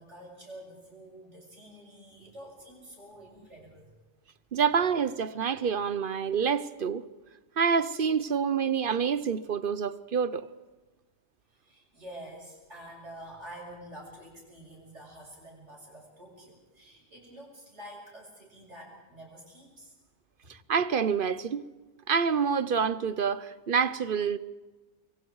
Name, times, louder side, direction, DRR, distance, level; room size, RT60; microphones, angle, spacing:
voice 1, 0.0-3.9 11.5-19.9, right 1 dB, 75° right, 7.4 m, -48 dB
voice 2, 4.5-7.0 7.6-10.5 20.7-21.7 22.1-24.4, right 6 dB, 50° right, 0.9 m, -27 dB
26.5 x 23.0 x 4.7 m
omnidirectional pair, 1.2 m